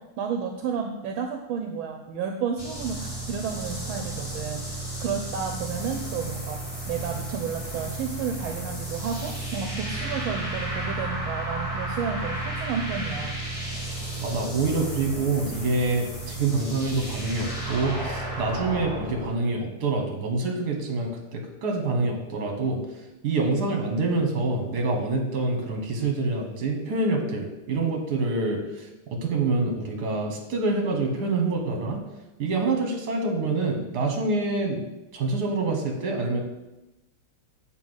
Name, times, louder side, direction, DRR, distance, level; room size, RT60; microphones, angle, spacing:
voice 1, 0.0-6.6 6.9-13.4, right 6 dB, 75° right, 4 dB, 1.4 m, -31 dB
sound 1, 2.6-19.3, right 2 dB, 20° left, 1.2 m, -33 dB
voice 2, 14.2-22.8 23.2-32.0 32.4-34.9 35.1-36.4, right 3 dB, 55° right, 2 dB, 1.6 m, -26 dB
7.2 x 3.8 x 6.2 m, 0.98 s
omnidirectional pair, 2.3 m